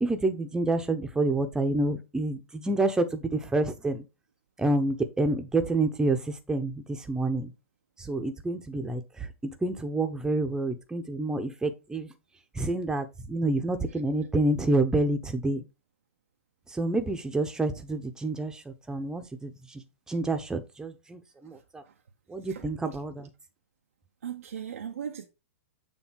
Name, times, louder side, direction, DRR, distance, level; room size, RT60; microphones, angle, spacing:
voice 1, 0.0-4.0 4.6-7.5 8.0-9.3 9.6-12.1 12.5-15.6 16.7-21.8 22.3-23.3, right 2 dB, 10° right, 0.9 m, -28 dB
voice 2, 21.4-21.9 22.4-22.7 24.2-25.3, right 8 dB, 80° right, 0.7 m, -39 dB
7.1 x 2.8 x 5.8 m
hypercardioid pair, 115°, 8 cm